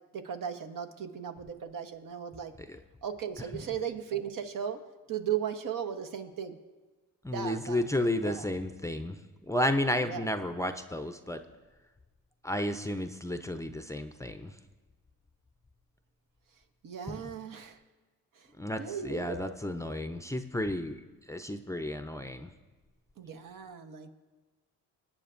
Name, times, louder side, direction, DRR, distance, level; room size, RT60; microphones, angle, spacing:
voice 1, 0.1-2.5 3.0-4.8 5.1-6.6 7.3-7.8 8.2-8.5 10.0-10.3 16.8-17.8 18.4-18.5 18.8-19.5 23.2-24.1, right 8 dB, 60° right, 6 dB, 1.0 m, -36 dB
voice 2, 7.2-11.4 12.4-14.6 17.1-17.4 18.6-22.5, left 1 dB, 10° left, 7 dB, 0.6 m, -32 dB
21.0 x 8.9 x 2.5 m, 1.3 s
cardioid pair, 70°, 36 cm